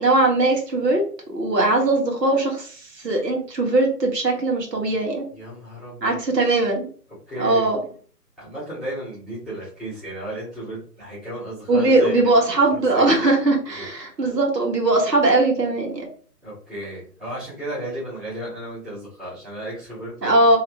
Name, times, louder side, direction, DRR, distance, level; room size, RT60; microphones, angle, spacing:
voice 1, 0.0-5.3 6.0-6.9 7.4-7.8 11.7-16.1 20.2-20.6, right 2 dB, 80° right, 0 dB, 1.6 m, -20 dB
voice 2, 5.3-6.2 7.3-7.7 8.4-12.4 12.9-13.0 13.7-13.9 14.2-14.3 16.4-20.6, right 1 dB, ahead, -14 dB, 1.1 m, -34 dB
3.1 x 2.9 x 3.4 m, 0.44 s
figure-of-eight pair, 150°, 48 cm